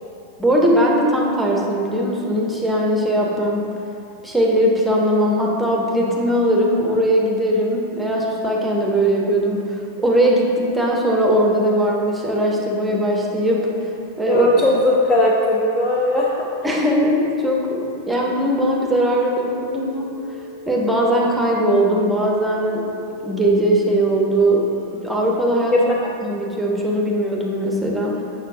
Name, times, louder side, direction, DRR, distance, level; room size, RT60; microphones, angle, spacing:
voice 1, 0.4-3.7 4.2-13.7 14.2-14.5 16.6-20.1 20.7-22.9 23.2-24.7 24.9-25.7 26.2-28.2, right 1 dB, 5° right, -2 dB, 0.9 m, -19 dB
sound 1, 11.8-24.9, left 1 dB, 60° left, 1.0 m, -41 dB
voice 2, 14.3-16.5 25.7-25.8, left 2 dB, 25° left, -3 dB, 0.6 m, -18 dB
6.5 x 6.4 x 2.7 m, 2.5 s
figure-of-eight pair, 90°, 0 cm